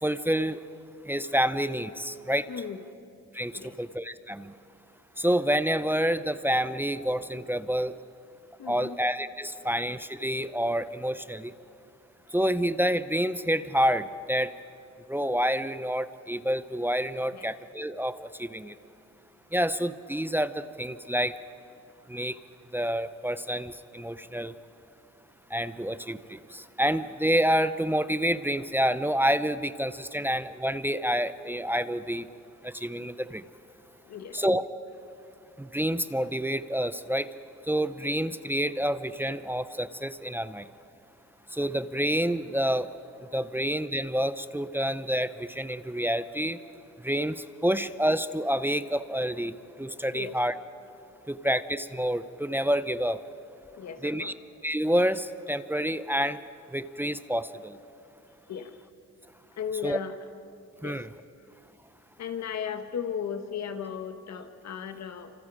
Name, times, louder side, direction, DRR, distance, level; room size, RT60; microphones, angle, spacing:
voice 1, 0.0-0.6 1.1-2.5 3.3-4.5 5.2-7.9 8.7-11.5 12.3-14.5 15.1-18.8 19.5-21.3 22.1-22.4 22.7-24.5 25.5-32.3 32.6-33.4 34.3-34.6 35.6-37.3 37.7-40.6 41.5-42.9 43.3-46.6 47.0-50.5 51.3-53.2 54.0-54.3 54.6-56.4 56.7-57.7 59.8-60.0 60.8-61.1, equal, 5° right, 13 dB, 0.7 m, -28 dB
voice 2, 2.5-2.8 3.5-3.8 8.6-9.0 17.3-17.4 34.0-34.4 50.1-50.3 53.8-54.3 58.5-58.8 59.6-60.1 60.8-61.1 62.2-65.3, left 7 dB, 60° left, 8 dB, 1.7 m, -36 dB
28.5 x 26.0 x 5.0 m, 2.6 s
cardioid pair, 90°, 30 cm